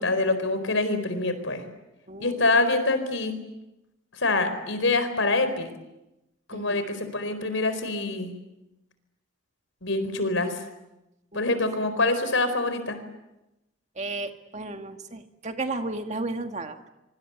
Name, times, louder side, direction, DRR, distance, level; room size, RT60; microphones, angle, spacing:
voice 1, 0.0-1.6 2.2-3.4 4.1-5.7 6.5-8.3 9.8-10.6 11.3-13.0, left 2 dB, 80° left, 11 dB, 4.5 m, -25 dB
voice 2, 2.1-2.5 6.5-6.8 11.3-11.4 14.0-16.9, right 2 dB, 35° right, 6 dB, 1.9 m, -33 dB
25.0 x 25.0 x 8.2 m, 0.95 s
head